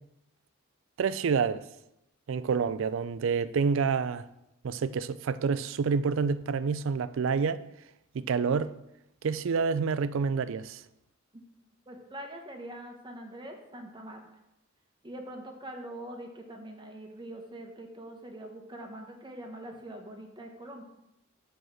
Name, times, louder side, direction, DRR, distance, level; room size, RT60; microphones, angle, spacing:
voice 1, 1.0-1.6 2.3-4.2 4.6-7.6 8.1-8.7 9.2-10.8, right 5 dB, 70° right, 0.4 m, -28 dB
voice 2, 11.9-14.2 15.0-20.8, right 1 dB, 25° right, 1.1 m, -43 dB
7.8 x 4.7 x 6.2 m
head